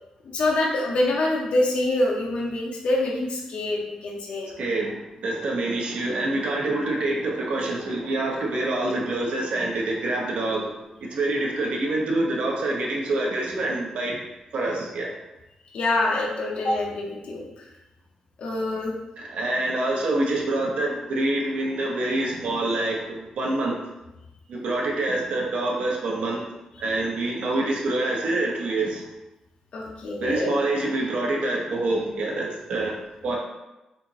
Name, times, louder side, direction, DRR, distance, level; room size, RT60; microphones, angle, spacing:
voice 1, 0.3-4.5 15.7-17.4 18.4-18.9 27.4-27.5 29.7-30.5, left 2 dB, 65° left, -2 dB, 0.7 m, -25 dB
voice 2, 4.6-10.7 11.0-14.2 14.5-15.1 19.2-23.8 24.5-26.4 26.8-29.0 30.2-33.4, right 2 dB, 70° right, -2 dB, 1.0 m, -26 dB
4.4 x 2.5 x 4.1 m, 1.0 s
wide cardioid pair, 145°, 2 cm